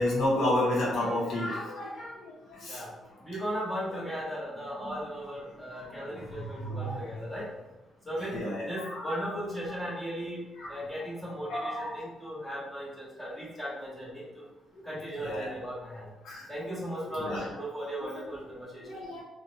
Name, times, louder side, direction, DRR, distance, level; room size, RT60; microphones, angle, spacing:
voice 1, 0.0-2.1 2.6-2.8 3.9-4.0 6.6-7.0 8.3-9.2 10.6-10.7 11.5-11.9 15.2-15.5 16.3-16.4 17.0-17.5 18.9-19.2, left 1 dB, 75° left, -5 dB, 0.7 m, -30 dB
voice 2, 3.2-7.5 8.1-14.4 14.8-16.1 16.5-18.9, equal, 10° left, -7 dB, 0.9 m, -37 dB
2.3 x 2.0 x 2.8 m, 1.0 s
cardioid pair, 90°, 0 cm